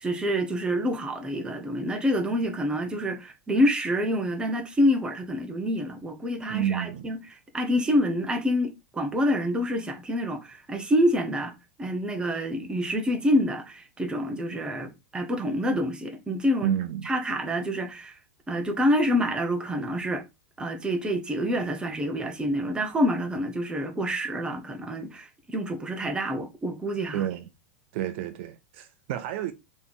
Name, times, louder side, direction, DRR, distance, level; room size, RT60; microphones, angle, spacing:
voice 1, 0.0-7.2 7.5-11.5 11.8-16.7 17.0-18.2 18.5-20.2 20.6-27.3, equal, 15° right, 0.9 m, -27 dB
voice 2, 6.5-7.1 16.6-17.1 27.1-27.5 27.9-29.5, right 11 dB, 60° right, 0.5 m, -30 dB
3.4 x 3.1 x 3.9 m
hypercardioid pair, 115°, 7 cm